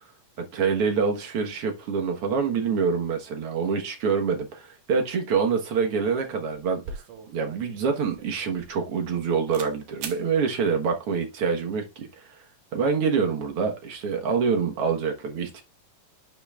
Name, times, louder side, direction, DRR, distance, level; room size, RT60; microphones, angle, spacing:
voice 1, 0.5-6.8 7.3-12.1 12.7-15.6, right 5 dB, 55° right, 1.9 m, -26 dB
sound 1, 6.8-9.2 9.5-9.7 10.0-10.2, right 6 dB, 70° right, 2.4 m, -40 dB
11.0 x 5.9 x 2.4 m
omnidirectional pair, 3.7 m